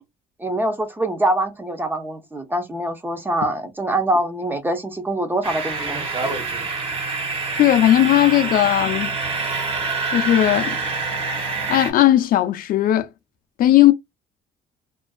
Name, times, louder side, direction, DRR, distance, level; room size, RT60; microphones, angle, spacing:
voice 1, 0.4-6.3, right 1 dB, 10° right, 0.5 m, -24 dB
sound 1, 5.4-11.9, right 4 dB, 35° right, 0.9 m, -26 dB
voice 2, 7.5-9.2 10.1-10.8 11.7-13.1 13.6-13.9, left 13 dB, 55° left, 0.4 m, -17 dB
2.5 x 2.2 x 2.2 m
cardioid pair, 110°, 17 cm